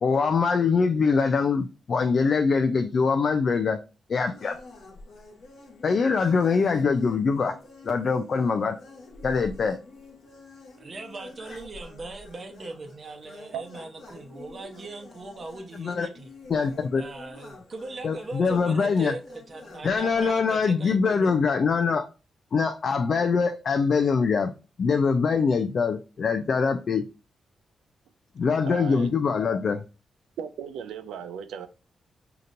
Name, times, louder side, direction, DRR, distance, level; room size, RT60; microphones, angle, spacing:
voice 1, 0.0-3.8 4.1-4.6 5.8-7.6 7.8-8.8 9.2-9.8 15.8-16.1 16.5-17.0 18.0-19.1 19.8-22.1 22.5-24.5 24.8-27.0 28.4-29.8, left 5 dB, 60° left, 0.4 m, -23 dB
sound 1, 4.2-20.4, left 2 dB, 80° left, 1.2 m, -48 dB
voice 2, 10.8-16.3 16.9-21.3, right 2 dB, 50° right, 0.8 m, -40 dB
voice 3, 28.6-29.1 30.4-31.7, right 8 dB, 85° right, 0.4 m, -36 dB
5.0 x 2.9 x 2.5 m
supercardioid pair, 50°, 0 cm